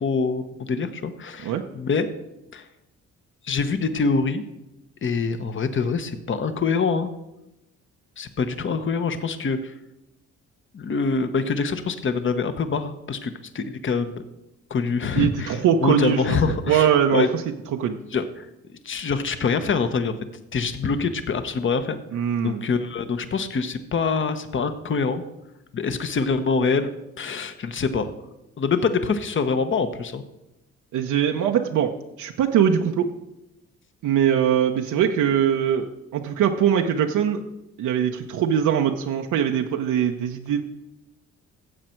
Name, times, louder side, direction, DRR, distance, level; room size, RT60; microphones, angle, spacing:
voice 1, 0.0-2.1 2.5-2.6 3.4-4.4 5.0-7.1 8.2-9.7 10.7-14.2 14.7-16.9 17.1-17.3 18.1-18.5 18.8-20.1 20.5-22.0 22.4-25.2 25.7-26.9 27.2-28.1 28.6-30.2, left 5 dB, 40° left, 10 dB, 1.1 m, -25 dB
voice 2, 15.1-17.4 17.7-18.0 22.1-22.6 30.9-31.9 32.2-33.1 34.0-37.4 37.8-40.6, right 9 dB, 80° right, 3 dB, 0.8 m, -22 dB
15.0 x 7.6 x 4.5 m, 0.92 s
cardioid pair, 90°, 30 cm